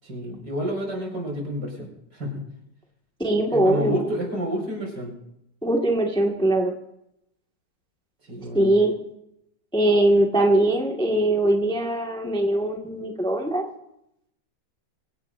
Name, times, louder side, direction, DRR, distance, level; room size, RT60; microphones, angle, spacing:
voice 1, 0.0-2.5 3.5-5.1 8.3-8.7, equal, 70° right, 0 dB, 6.0 m, -29 dB
voice 2, 3.2-4.0 5.6-6.7 8.5-8.9 9.7-13.6, right 1 dB, 5° left, 0 dB, 1.6 m, -21 dB
24.5 x 16.5 x 2.6 m, 0.80 s
omnidirectional pair, 1.9 m